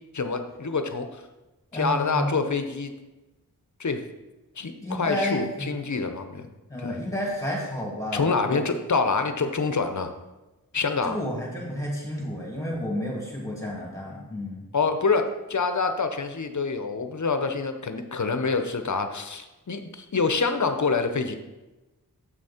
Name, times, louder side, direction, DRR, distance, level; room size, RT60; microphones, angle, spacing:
voice 1, 0.1-1.2 1.7-2.9 3.8-4.0 4.6-6.5 6.8-7.0 8.1-10.1 10.7-11.2 14.7-21.4, left 4 dB, 55° left, 8 dB, 0.9 m, -26 dB
voice 2, 1.7-2.3 4.8-5.7 6.7-8.7 11.0-14.7, left 1 dB, 10° left, -4 dB, 2.8 m, -31 dB
7.8 x 6.3 x 4.4 m, 1.1 s
cardioid pair, 50°, 36 cm